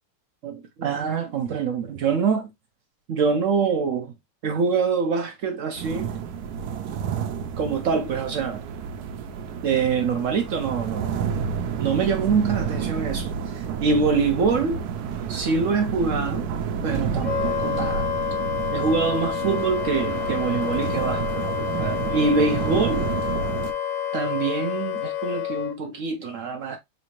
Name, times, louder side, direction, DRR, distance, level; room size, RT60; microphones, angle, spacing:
voice 1, 0.4-2.5 3.1-4.1 4.4-6.1 7.6-8.6 9.6-11.1 11.8-14.8 15.3-16.5 16.8-18.5 18.7-23.1 24.1-26.8, right 5 dB, 65° right, 0.9 m, -25 dB
sound 1, 5.8-23.7, right 7 dB, 85° right, 1.1 m, -30 dB
Wind instrument woodwind instrument, 17.2-25.7, left 9 dB, 65° left, 0.4 m, -28 dB
4.0 x 2.6 x 2.9 m
omnidirectional pair, 1.6 m